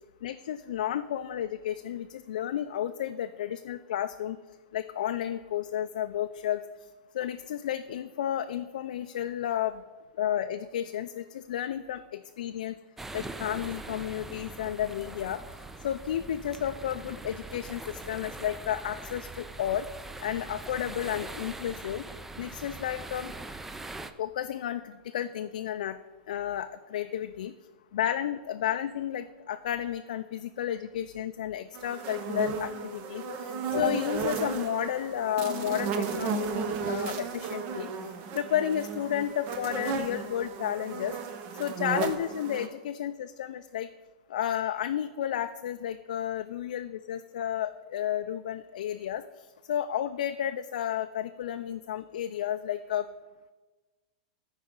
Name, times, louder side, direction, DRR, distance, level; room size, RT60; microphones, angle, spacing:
voice 1, 0.2-4.4 4.7-6.6 7.1-9.7 10.2-12.7 13.1-15.4 15.8-19.9 20.2-22.0 22.4-23.3 24.2-26.0 26.3-27.5 27.9-33.2 33.7-37.9 38.3-41.1 41.6-43.9 44.3-49.2 49.7-53.1, left 10 dB, 75° left, 8 dB, 0.3 m, -32 dB
sound 1, 13.0-24.1, right 2 dB, 5° right, 0.3 m, -42 dB
sound 2, 31.7-42.7, right 5 dB, 40° right, 0.7 m, -34 dB
13.0 x 4.8 x 3.7 m, 1.3 s
hypercardioid pair, 135°, 4 cm